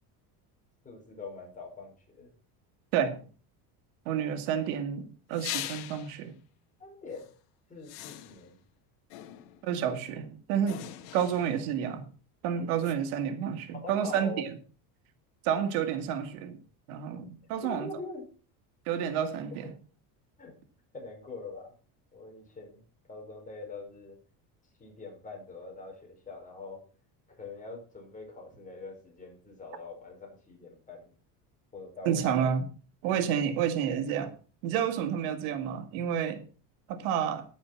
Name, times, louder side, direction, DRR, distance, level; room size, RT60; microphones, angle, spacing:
voice 1, 0.8-2.3 6.8-7.3 7.7-8.6 13.8-14.4 17.6-18.3 19.6-19.7 20.4-20.5 20.9-21.7 22.1-22.8 23.1-24.2 24.8-26.8 27.3-31.1 31.7-32.4, left 3 dB, 20° left, 0 dB, 5.3 m, -43 dB
voice 2, 2.9-3.2 4.1-6.3 9.6-12.0 12.4-14.5 15.4-16.6 16.9-17.9 18.9-19.7 32.0-32.7 33.0-34.3 34.6-36.4 36.9-37.4, right 8 dB, 90° right, 9 dB, 1.9 m, -30 dB
sound 1, 5.3-6.2 7.1-7.3 7.8-8.6 9.1-9.7 10.7-11.7 12.8-12.9, left 13 dB, 80° left, 1.6 m, -41 dB
10.0 x 9.3 x 5.9 m, 0.37 s
cardioid pair, 145°, 41 cm